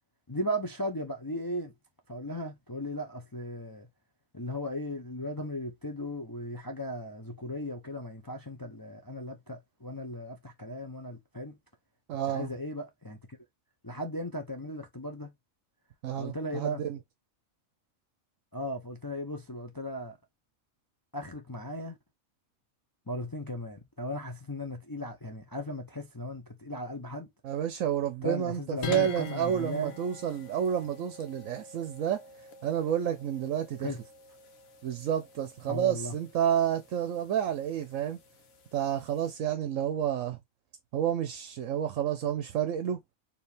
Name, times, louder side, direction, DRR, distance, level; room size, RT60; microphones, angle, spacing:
voice 1, 0.3-1.7 2.1-3.9 4.3-11.6 12.3-13.2 13.8-15.3 16.2-16.8 18.5-20.1 21.1-22.0 23.1-27.3 28.2-29.9 33.8-34.0 35.7-36.1, equal, 20° left, 0.6 m, -36 dB
voice 2, 12.1-12.5 16.0-17.0 27.4-32.2 32.6-33.9 34.8-38.2 38.7-40.4 40.9-43.0, right 9 dB, 75° right, 1.0 m, -30 dB
sound 1, 28.8-39.3, left 6 dB, 80° left, 1.4 m, -45 dB
4.7 x 2.9 x 3.3 m
omnidirectional pair, 1.4 m